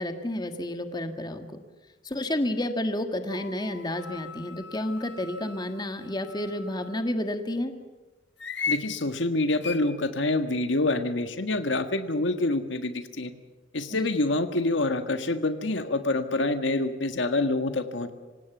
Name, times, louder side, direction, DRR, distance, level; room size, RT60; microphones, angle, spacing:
voice 1, 0.0-1.6 2.0-7.7 13.9-14.1, left 1 dB, 25° left, 7 dB, 1.7 m, -30 dB
playing the german flute, 3.3-7.1 8.4-8.9 9.6-9.8, left 5 dB, 65° left, 1.4 m, -37 dB
voice 2, 8.7-13.3 13.7-18.1, left 2 dB, 80° left, 9 dB, 1.6 m, -26 dB
26.5 x 17.5 x 7.3 m, 1.2 s
head